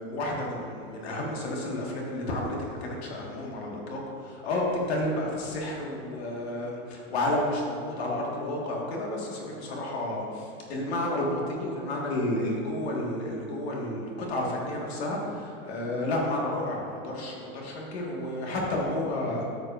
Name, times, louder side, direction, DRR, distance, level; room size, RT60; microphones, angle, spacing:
voice 1, 0.0-19.4, left 1 dB, 50° left, -2 dB, 1.8 m, -31 dB
12.0 x 7.1 x 2.5 m, 2.9 s
supercardioid pair, 180°, 40 cm